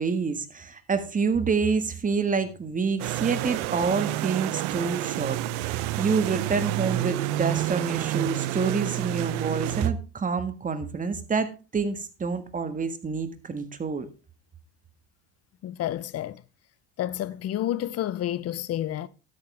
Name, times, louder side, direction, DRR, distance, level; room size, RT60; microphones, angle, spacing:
voice 1, 0.0-14.1, right 5 dB, 25° right, 1.6 m, -27 dB
sound 1, 3.0-9.9, right 15 dB, 90° right, 0.8 m, -29 dB
voice 2, 15.6-16.4 17.0-19.1, left 12 dB, 50° left, 0.8 m, -30 dB
12.5 x 9.4 x 3.4 m
cardioid pair, 105°, 31 cm